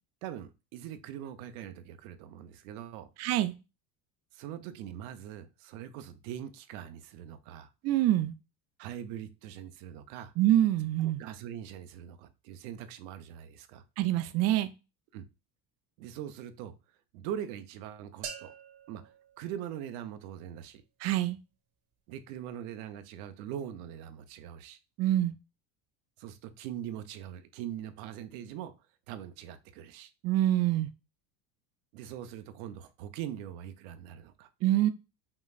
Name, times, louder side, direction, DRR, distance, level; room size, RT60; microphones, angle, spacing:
voice 1, 0.2-3.1 4.3-7.7 8.8-10.3 11.0-13.8 15.1-15.3 16.0-16.7 17.1-18.5 18.9-20.8 22.1-24.8 26.2-28.7 29.1-30.1 31.9-34.5, right 10 dB, 85° right, 10 dB, 0.7 m, -42 dB
voice 2, 3.2-3.5 7.8-8.3 10.4-11.2 14.0-14.7 21.0-21.4 25.0-25.3 30.2-30.9 34.6-34.9, right 13 dB, 40° right, 11 dB, 0.4 m, -25 dB
sound 1, 18.2-20.2, right 7 dB, 60° right, 1.1 m, -46 dB
5.5 x 3.0 x 2.4 m, 0.28 s
cardioid pair, 130°, 42 cm